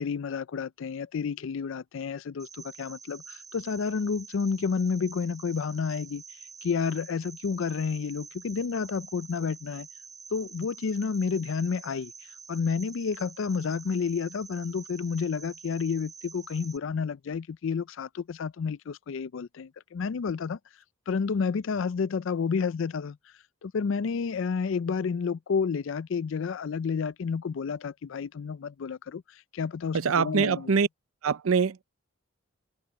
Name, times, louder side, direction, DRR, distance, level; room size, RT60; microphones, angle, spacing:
voice 1, 0.0-6.2 6.6-9.9 10.3-12.1 12.5-20.6 21.1-23.2 23.6-30.8, left 5 dB, 65° left, 0.4 m, -30 dB
Cricket, 2.4-16.8, right 6 dB, 20° right, 3.3 m, -47 dB
voice 2, 29.9-30.9 31.2-31.8, right 6 dB, 80° right, 0.5 m, -24 dB
head